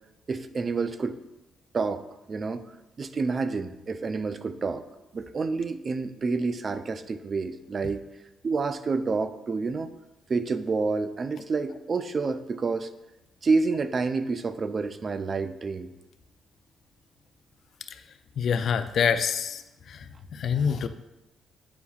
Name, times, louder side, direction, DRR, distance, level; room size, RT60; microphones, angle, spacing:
voice 1, 0.3-1.2 1.7-2.0 2.3-2.7 3.0-4.8 5.1-8.0 8.4-9.9 10.3-12.9 13.4-15.9, right 4 dB, 40° right, 11 dB, 0.3 m, -28 dB
voice 2, 18.4-19.6 19.9-20.0 20.3-20.9, left 7 dB, 60° left, 10 dB, 0.4 m, -25 dB
8.4 x 5.6 x 2.4 m, 0.99 s
cardioid pair, 90°, 0 cm